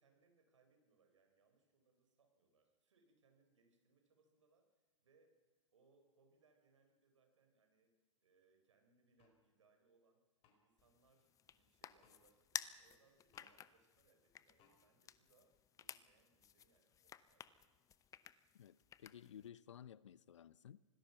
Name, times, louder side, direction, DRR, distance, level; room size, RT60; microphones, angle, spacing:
voice 1, 0.0-5.4 5.7-10.2 10.6-17.8, right 4 dB, 75° right, 4.7 m, -76 dB
sound 1, 9.2-9.4 10.4-10.6 12.0-12.2 13.3-13.5 14.6-14.7, left 5 dB, 35° left, 4.7 m, -70 dB
sound 2, 10.8-19.5, left 9 dB, 20° left, 0.8 m, -54 dB
voice 2, 18.5-20.8, left 9 dB, 70° left, 0.7 m, -56 dB
26.5 x 19.0 x 5.9 m
figure-of-eight pair, 110°, 16 cm